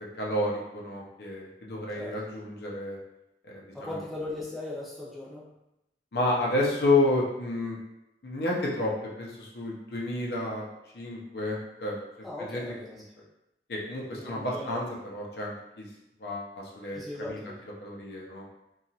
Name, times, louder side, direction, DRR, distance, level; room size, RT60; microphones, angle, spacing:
voice 1, 0.2-3.0 3.4-4.0 6.1-7.8 8.2-10.7 10.9-12.0 12.5-12.6 13.7-14.8 15.1-15.9 16.2-17.4 17.8-18.4, left 2 dB, 65° left, -3 dB, 0.5 m, -30 dB
voice 2, 3.7-5.5 12.2-13.0 14.1-14.9 16.9-17.6, left 2 dB, ahead, -8 dB, 0.6 m, -38 dB
2.8 x 2.3 x 2.7 m, 0.90 s
head